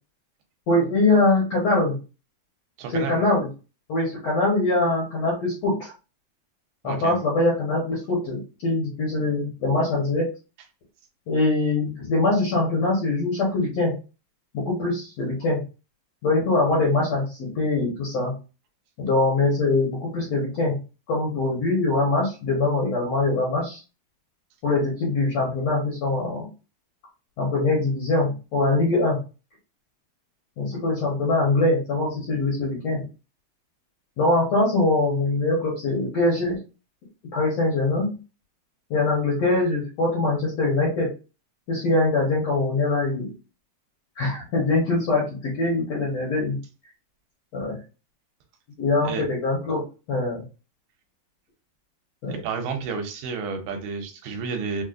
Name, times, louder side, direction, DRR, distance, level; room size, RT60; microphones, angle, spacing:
voice 1, 0.7-2.0 2.9-3.5 3.9-5.9 6.8-10.3 11.3-13.9 14.5-15.6 16.2-18.3 19.0-20.8 21.1-23.8 24.6-26.5 27.4-29.2 30.6-33.0 34.2-36.6 37.3-38.2 38.9-41.1 41.7-43.3 44.2-46.6 47.5-47.8 48.8-49.8 50.1-50.4 52.2-52.4, left 2 dB, 65° left, -4 dB, 1.6 m, -23 dB
voice 2, 2.8-3.2 6.8-7.1 49.0-49.2 52.3-54.8, right 5 dB, 80° right, 4 dB, 2.5 m, -31 dB
6.1 x 2.0 x 2.5 m, 0.32 s
omnidirectional pair, 4.4 m